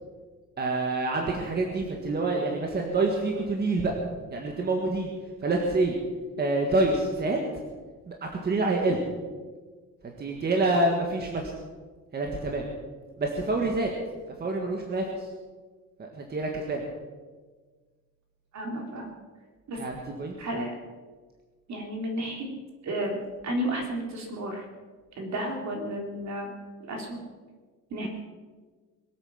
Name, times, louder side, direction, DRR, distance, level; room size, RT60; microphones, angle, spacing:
voice 1, 0.6-3.9 4.3-5.1 5.4-5.9 6.4-7.5 8.1-9.0 10.0-11.5 12.1-12.6 13.2-13.9 14.4-15.3 16.0-16.8 19.8-20.3, right 2 dB, 30° right, 1 dB, 1.7 m, -27 dB
voice 2, 18.5-19.1 19.7-19.8 20.4-20.8 21.7-22.5 22.8-24.6 25.2-26.5 26.8-27.2 27.9-28.1, right 1 dB, 55° right, 2 dB, 3.6 m, -32 dB
22.5 x 8.7 x 7.4 m, 1.4 s
cardioid pair, 175°, 32 cm